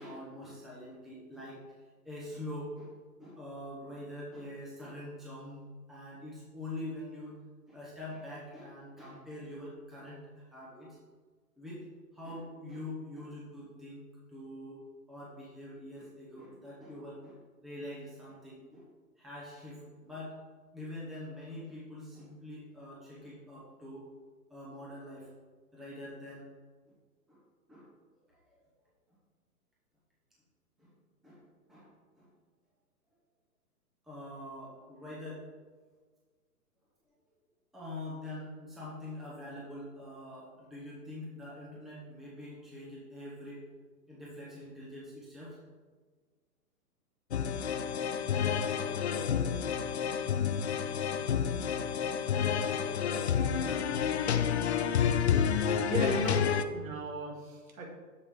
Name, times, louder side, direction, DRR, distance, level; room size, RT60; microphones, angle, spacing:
voice 1, 0.0-1.6 2.0-2.9 3.2-7.3 7.7-11.0 11.6-14.0 14.3-18.9 19.2-20.3 20.7-24.1 24.5-25.3 25.7-26.5 26.9-27.0 27.3-27.4 27.7-27.9 28.3-28.5 30.8-30.9 31.2-32.3 34.0-35.4 37.7-43.6 44.1-45.6, left 1 dB, ahead, -7 dB, 0.8 m, -44 dB
sound 1, 47.3-56.6, left 7 dB, 45° left, 0.4 m, -29 dB
voice 2, 55.6-56.4 56.7-57.9, right 4 dB, 55° right, 1 dB, 2.1 m, -37 dB
7.9 x 7.2 x 3.8 m, 1.5 s
hypercardioid pair, 150°, 48 cm